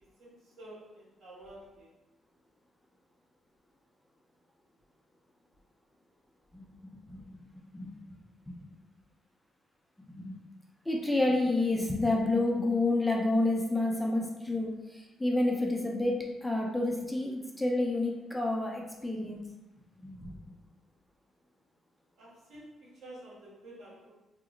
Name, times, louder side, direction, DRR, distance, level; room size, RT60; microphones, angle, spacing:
voice 1, 0.2-1.9 22.2-24.1, right 1 dB, 80° right, -7 dB, 1.5 m, -50 dB
voice 2, 7.7-8.2 8.5-8.6 10.2-10.4 10.9-19.4 20.0-20.3, left 2 dB, 10° left, -1 dB, 0.5 m, -29 dB
2.9 x 2.0 x 3.8 m, 1.0 s
cardioid pair, 90°, 0 cm